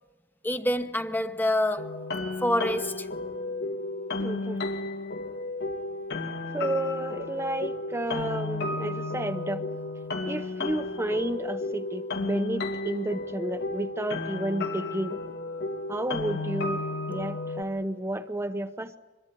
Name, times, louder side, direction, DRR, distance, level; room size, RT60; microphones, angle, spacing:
voice 1, 0.4-2.0 2.4-3.1, left 1 dB, 10° left, 1.1 m, -27 dB
sound 1, 1.8-17.6, left 2 dB, 60° left, 2.5 m, -33 dB
voice 2, 4.2-4.6 6.5-9.6 10.2-15.2 15.9-19.0, right 1 dB, 15° right, 0.9 m, -31 dB
26.0 x 22.5 x 10.0 m
head